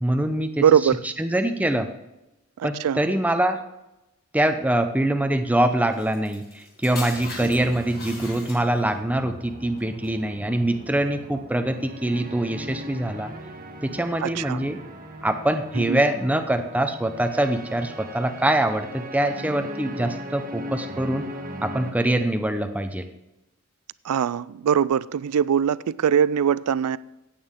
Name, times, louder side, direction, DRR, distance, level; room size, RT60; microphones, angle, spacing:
voice 1, 0.0-0.6 1.0-1.9 2.6-3.6 4.3-13.3 13.8-14.8 15.2-21.2 21.6-23.1, right 1 dB, 5° right, 0.7 m, -24 dB
voice 2, 0.6-1.0 2.6-3.0 7.4-7.5 14.2-14.6 15.8-16.0 24.0-27.0, right 8 dB, 85° right, 0.4 m, -22 dB
sound 1, 5.9-9.0 9.8-10.1, left 3 dB, 45° left, 4.6 m, -40 dB
sound 2, 7.1-21.9, equal, 40° right, 1.5 m, -39 dB
16.5 x 8.6 x 3.7 m
head